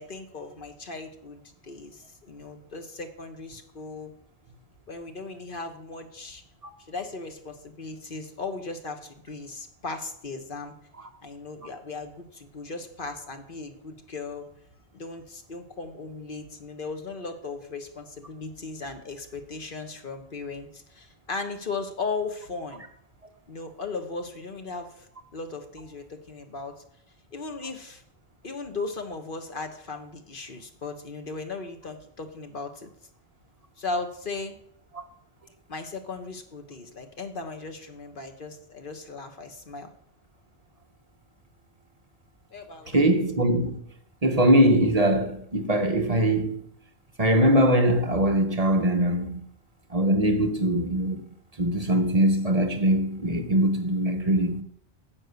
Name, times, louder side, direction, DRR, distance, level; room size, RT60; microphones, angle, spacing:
voice 1, 0.0-4.1 4.9-6.4 6.9-10.7 11.2-14.5 14.9-22.8 23.5-26.7 27.3-28.0 28.4-32.9 33.8-34.6 35.7-39.9 42.5-43.0, left 3 dB, 55° left, 1.3 m, -37 dB
voice 2, 42.9-43.8 44.2-46.6 47.2-49.4 49.9-51.2 51.6-54.6, right 1 dB, 40° right, 0.9 m, -22 dB
10.0 x 5.5 x 8.1 m
omnidirectional pair, 1.1 m